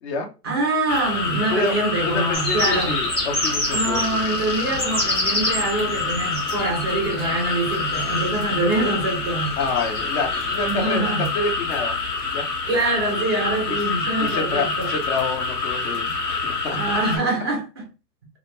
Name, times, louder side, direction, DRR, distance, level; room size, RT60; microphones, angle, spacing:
voice 1, 0.4-3.0 3.7-9.5 10.6-11.3 12.7-14.9 16.7-17.8, right 2 dB, 20° right, 0.3 m, -24 dB
sound 1, 0.9-17.2, left 4 dB, 75° left, 1.1 m, -27 dB
voice 2, 2.0-4.4 4.8-5.1 9.6-12.0 12.3-12.5 13.7-13.9 14.2-16.8, left 4 dB, 40° left, 0.7 m, -28 dB
sound 2, 2.3-10.9, left 1 dB, 15° left, 0.9 m, -30 dB
2.2 x 2.1 x 2.8 m
hypercardioid pair, 125°, 48 cm